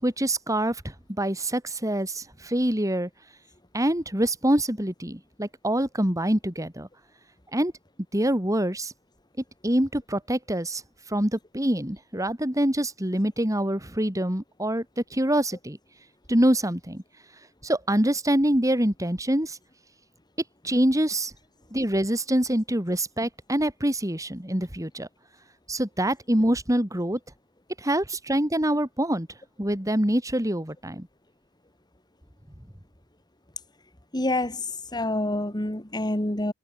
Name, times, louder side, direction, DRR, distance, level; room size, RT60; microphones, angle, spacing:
voice 1, 0.0-3.1 3.7-6.9 7.5-7.7 8.1-8.9 9.6-10.8 11.1-15.8 16.3-17.0 17.6-19.6 20.6-21.3 21.7-25.1 25.7-27.2 27.8-29.3 29.6-31.1, right 1 dB, 15° right, 3.6 m, -25 dB
voice 2, 34.1-36.5, left 1 dB, 20° left, 2.5 m, -27 dB
head